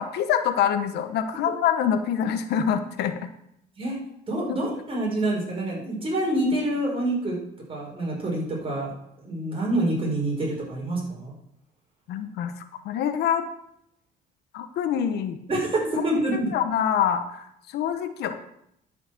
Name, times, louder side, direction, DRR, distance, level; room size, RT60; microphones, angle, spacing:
voice 1, 0.0-3.2 4.5-4.6 12.1-12.5 12.8-13.4 14.5-15.4 16.3-18.3, left 8 dB, 75° left, 8 dB, 1.1 m, -25 dB
voice 2, 4.3-7.4 7.7-11.3 15.5-16.5, right 1 dB, 35° right, -2 dB, 5.2 m, -27 dB
12.0 x 5.8 x 6.6 m, 0.77 s
cardioid pair, 110°, 17 cm